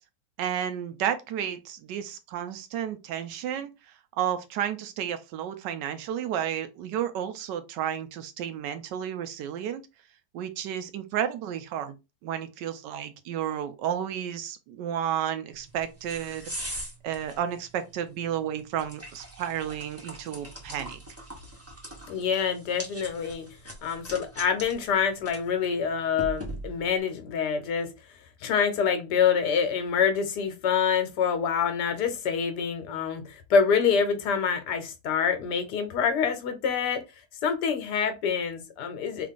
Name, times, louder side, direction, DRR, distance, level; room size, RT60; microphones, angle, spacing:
voice 1, 0.4-9.8 10.3-11.9 12.2-16.8 17.0-21.0, right 9 dB, 90° right, 1.3 m, -32 dB
sound 1, 15.5-27.0, right 1 dB, 10° right, 0.8 m, -42 dB
voice 2, 22.1-23.5 23.8-27.9 28.4-37.0 37.4-39.3, left 6 dB, 80° left, 1.3 m, -26 dB
3.3 x 2.4 x 3.6 m
omnidirectional pair, 1.8 m